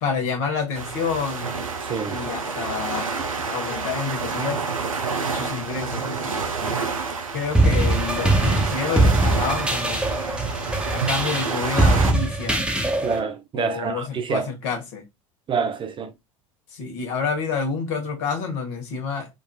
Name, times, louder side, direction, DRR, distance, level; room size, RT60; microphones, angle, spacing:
voice 1, 0.0-1.6 2.1-3.2 3.5-4.6 5.3-6.3 6.6-6.9 7.3-10.0 10.9-12.6 13.5-15.0 16.7-19.3, left 5 dB, 60° left, 1.4 m, -28 dB
sound 1, 0.8-12.1, right 4 dB, 90° right, 0.6 m, -29 dB
sound 2, 7.5-13.2, right 2 dB, 5° right, 1.1 m, -21 dB
voice 2, 13.0-14.5 15.5-16.1, right 6 dB, 30° right, 0.6 m, -27 dB
3.8 x 2.6 x 2.2 m
hypercardioid pair, 75°, 17 cm